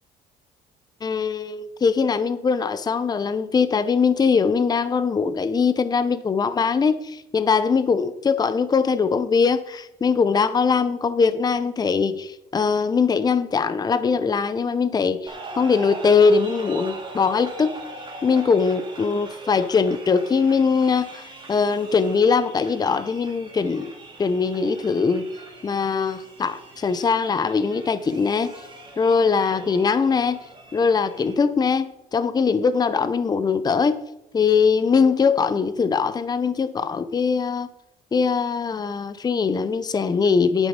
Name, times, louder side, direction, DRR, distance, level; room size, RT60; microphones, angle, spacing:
voice 1, 1.0-17.8 18.2-23.9 24.2-25.2 25.6-28.5 29.0-30.4 30.7-34.0 34.3-37.7 38.1-40.7, left 5 dB, 25° left, 13 dB, 0.6 m, -21 dB
sound 1, 15.3-31.3, right 2 dB, 30° right, 2.7 m, -41 dB
9.5 x 7.4 x 5.2 m, 0.85 s
cardioid pair, 110°, 17 cm